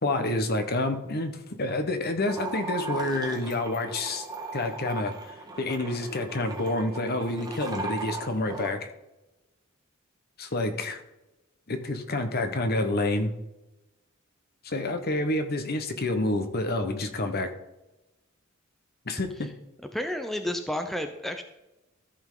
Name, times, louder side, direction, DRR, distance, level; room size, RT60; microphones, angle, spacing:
voice 1, 0.0-4.2 4.5-5.1 5.6-8.9 10.4-11.0 11.7-13.3 14.6-17.5 19.1-19.5, left 2 dB, 50° left, 7 dB, 1.1 m, -28 dB
sound 1, 2.2-8.7, right 3 dB, 20° right, 1.4 m, -37 dB
voice 2, 19.9-21.4, left 1 dB, ahead, 6 dB, 0.6 m, -31 dB
14.0 x 5.4 x 3.8 m, 0.98 s
head